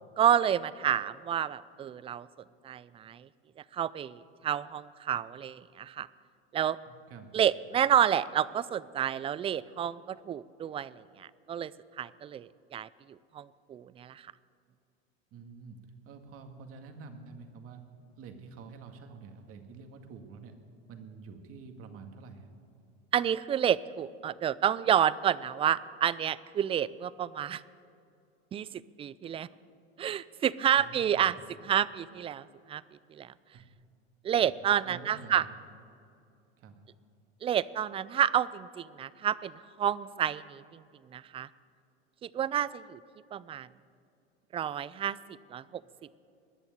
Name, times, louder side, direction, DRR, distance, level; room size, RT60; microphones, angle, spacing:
voice 1, 0.2-2.3 2.6-3.3 3.7-6.1 6.5-6.8 7.3-11.7 12.0-12.9 13.3-14.3 23.1-27.6 28.5-28.7 29.0-29.5 30.0-31.3 31.6-32.8 33.1-33.3 34.2-35.4 37.4-40.8 41.1-41.5 42.2-43.0 43.3-43.7 44.5-45.2 45.5-45.8, right 9 dB, 20° right, 19 dB, 0.3 m, -29 dB
voice 2, 6.9-7.3 15.3-17.8 18.2-20.6 20.9-22.5 30.8-31.3 33.5-33.7 34.4-34.5 34.8-35.5 36.6-36.8, right 5 dB, 45° right, 6 dB, 2.0 m, -48 dB
20.5 x 7.1 x 9.3 m, 2.5 s
hypercardioid pair, 100°, 32 cm